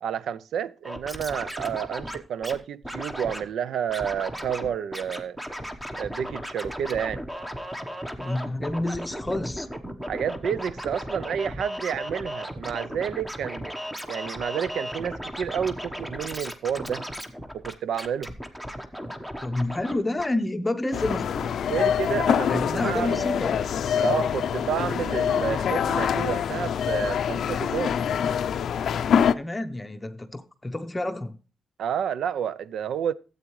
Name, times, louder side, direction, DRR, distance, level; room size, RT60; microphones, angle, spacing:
voice 1, 0.0-5.4 6.0-7.2 10.1-13.7 14.1-17.0 17.5-18.3 21.7-23.2 24.0-28.0 31.8-33.1, right 8 dB, 85° right, 0.4 m, -30 dB
Scratching (performance technique), 0.8-2.6 2.8-3.4 3.9-4.7 4.9-19.9 20.2-20.3, equal, 10° right, 1.0 m, -36 dB
voice 2, 8.2-9.7 19.4-21.6 22.4-23.6 29.3-31.4, left 2 dB, 15° left, 0.7 m, -29 dB
sound 1, 20.9-29.3, left 8 dB, 80° left, 0.4 m, -25 dB
13.0 x 8.0 x 3.1 m
cardioid pair, 110°, 0 cm